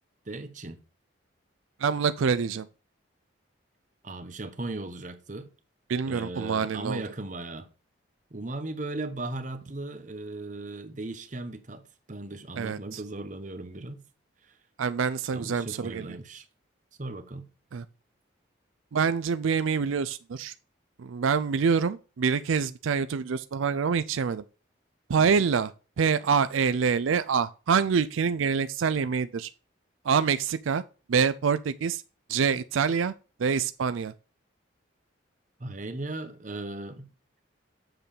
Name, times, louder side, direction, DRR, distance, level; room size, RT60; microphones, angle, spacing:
voice 1, 0.3-0.8 4.0-5.5 6.1-7.7 8.3-14.0 14.4-14.6 15.3-16.4 17.0-17.5 25.2-25.4 35.6-37.1, right 2 dB, 40° right, 1.0 m, -37 dB
voice 2, 1.8-2.7 5.9-7.0 12.5-13.0 14.8-16.1 17.7-17.8 18.9-20.5 21.0-24.4 25.1-25.7 26.0-29.5 30.1-30.8 31.1-32.0 32.3-33.1 33.4-34.1, right 6 dB, 80° right, 0.4 m, -26 dB
7.9 x 6.7 x 3.3 m
head